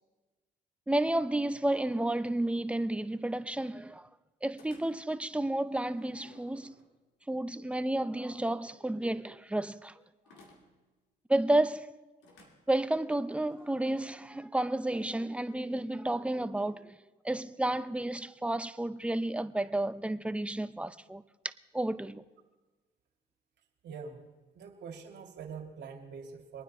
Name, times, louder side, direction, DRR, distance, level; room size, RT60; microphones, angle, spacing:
voice 1, 0.9-4.1 4.4-6.8 7.3-9.9 11.3-11.9 12.7-17.0 17.2-21.2 21.7-22.2, right 1 dB, 5° right, 0.6 m, -31 dB
sound 1, 4.6-5.2 5.7-7.2 10.3-10.9 12.2-14.1, left 3 dB, 80° left, 2.3 m, -59 dB
voice 2, 23.8-24.3 24.5-26.6, right 5 dB, 70° right, 2.3 m, -44 dB
24.0 x 9.5 x 4.2 m
supercardioid pair, 75°, 19 cm